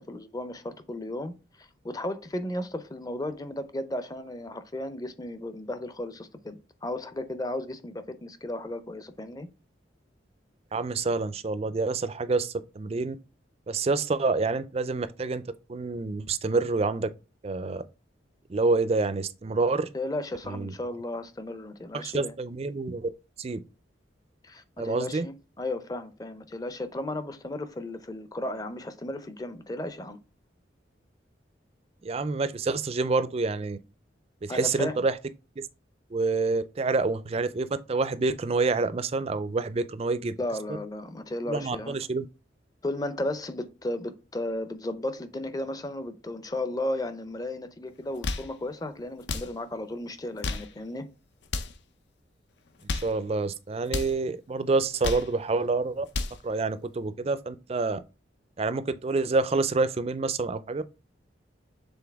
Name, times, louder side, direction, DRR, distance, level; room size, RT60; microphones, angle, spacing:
voice 1, 0.0-9.5 19.9-22.3 24.4-30.2 34.5-35.0 40.4-42.0 42.8-51.1, left 1 dB, 20° left, 0.6 m, -34 dB
voice 2, 10.7-13.2 13.7-15.4 15.7-17.1 17.4-17.8 18.5-19.9 20.5-20.7 21.9-23.1 23.4-23.6 24.8-25.3 32.0-33.8 34.4-35.1 36.1-40.3 41.5-42.3 52.9-56.1 56.4-58.0 58.6-60.8, right 3 dB, 35° right, 0.4 m, -27 dB
sound 1, 48.0-48.5 49.2-49.5 50.2-50.7 51.4-51.8 52.7-53.2 53.9-54.2 54.8-55.3 55.9-56.4, left 3 dB, 70° left, 0.6 m, -32 dB
7.0 x 3.8 x 3.5 m
head